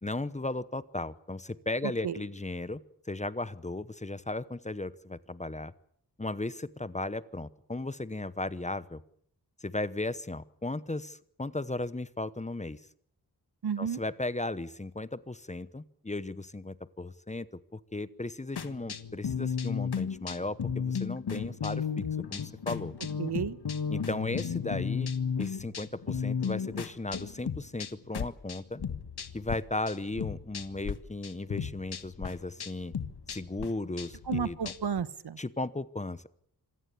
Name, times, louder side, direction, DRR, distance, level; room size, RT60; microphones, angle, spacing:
voice 1, 0.0-2.8 3.1-5.7 6.2-9.0 9.6-12.8 13.8-17.5 17.7-22.9 23.9-25.1 25.4-28.8 29.3-32.9 33.3-34.7 35.4-36.3, left 2 dB, 20° left, 16 dB, 0.9 m, -36 dB
voice 2, 1.8-2.2 13.6-14.0 23.2-23.6 34.3-35.4, right 7 dB, 80° right, 16 dB, 1.2 m, -32 dB
sound 1, 18.6-29.6 29.9-30.9 31.2-35.0, left 6 dB, 75° left, 1.6 m, -34 dB
26.5 x 17.5 x 8.4 m, 0.64 s
wide cardioid pair, 130°, 39 cm